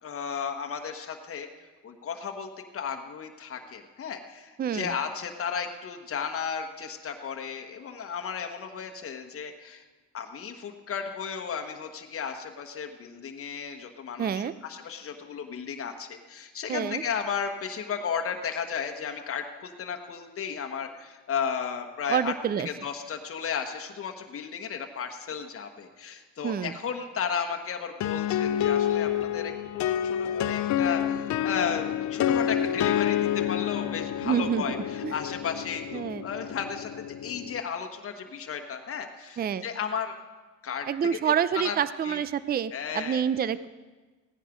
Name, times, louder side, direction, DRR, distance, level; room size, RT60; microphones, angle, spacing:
voice 1, 0.0-9.8 10.1-22.3 22.6-40.1 40.6-40.9 41.2-41.8 42.0-42.2 42.7-43.2, left 7 dB, 50° left, 4 dB, 1.3 m, -34 dB
voice 2, 4.6-4.9 14.2-14.5 16.7-17.0 22.1-22.7 26.4-26.7 34.2-34.6 35.0-35.2 35.9-36.3 39.4-39.7 40.9-43.7, right 8 dB, 30° right, 16 dB, 0.4 m, -27 dB
sound 1, 28.0-37.6, left 10 dB, 70° left, 0.6 m, -28 dB
16.0 x 10.0 x 5.1 m, 1.3 s
cardioid pair, 90°, 30 cm